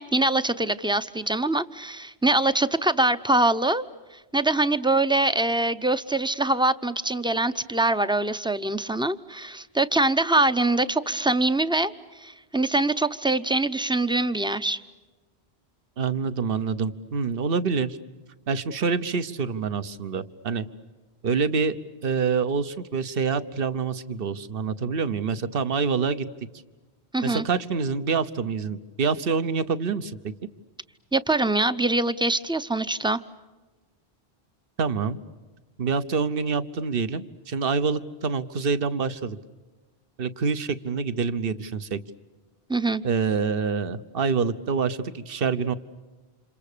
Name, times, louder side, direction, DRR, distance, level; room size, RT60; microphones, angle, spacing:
voice 1, 0.0-3.8 4.3-14.8 27.1-27.5 31.1-33.2 42.7-43.0, right 2 dB, 5° right, 11 dB, 0.6 m, -24 dB
voice 2, 16.0-17.9 18.5-20.7 21.2-21.8 22.0-26.2 27.2-30.3 34.8-35.2 35.8-39.4 40.2-42.0 43.0-45.7, right 5 dB, 60° right, 13 dB, 1.2 m, -26 dB
30.0 x 27.5 x 6.8 m, 1.2 s
omnidirectional pair, 1.1 m